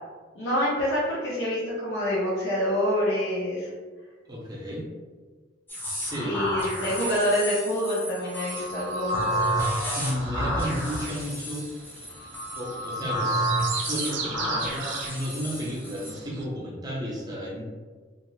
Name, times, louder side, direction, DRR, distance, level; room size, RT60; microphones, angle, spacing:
voice 1, 0.3-3.7 6.2-9.5, equal, 70° left, -9 dB, 0.8 m, -27 dB
voice 2, 4.3-4.9 5.8-6.4 9.9-11.7 12.6-17.6, equal, 20° right, -4 dB, 0.7 m, -33 dB
sound 1, 5.7-16.1, right 1 dB, 10° left, 0.8 m, -30 dB
sound 2, 8.5-16.4, right 5 dB, 70° right, 0.4 m, -39 dB
2.5 x 2.4 x 3.1 m, 1.4 s
head